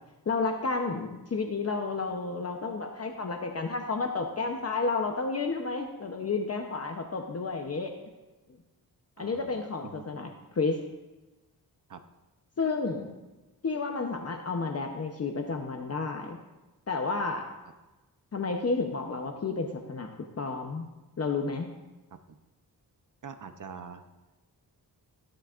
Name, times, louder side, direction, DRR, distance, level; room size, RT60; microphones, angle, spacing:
voice 1, 0.3-7.9 9.2-10.8 12.6-13.1 13.6-16.4 16.9-17.5 18.3-20.1 20.4-20.8 21.2-21.7, left 4 dB, 40° left, 3 dB, 0.8 m, -31 dB
voice 2, 9.2-10.0 11.9-12.0 22.1-22.4 23.2-24.0, right 6 dB, 50° right, 8 dB, 0.8 m, -45 dB
15.0 x 11.5 x 2.5 m, 1.1 s
wide cardioid pair, 125°, 38 cm